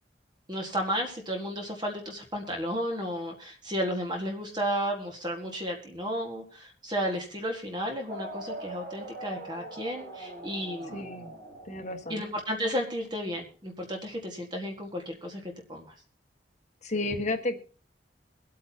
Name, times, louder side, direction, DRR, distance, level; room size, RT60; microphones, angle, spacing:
voice 1, 0.5-11.1 12.1-15.9, equal, 25° right, 2 dB, 1.7 m, -33 dB
sound 1, 8.1-12.6, right 2 dB, 55° right, 3.9 m, -42 dB
voice 2, 10.9-11.3 11.6-12.2 16.8-17.6, left 2 dB, 40° left, 4 dB, 1.4 m, -32 dB
24.0 x 8.5 x 2.8 m, 0.42 s
head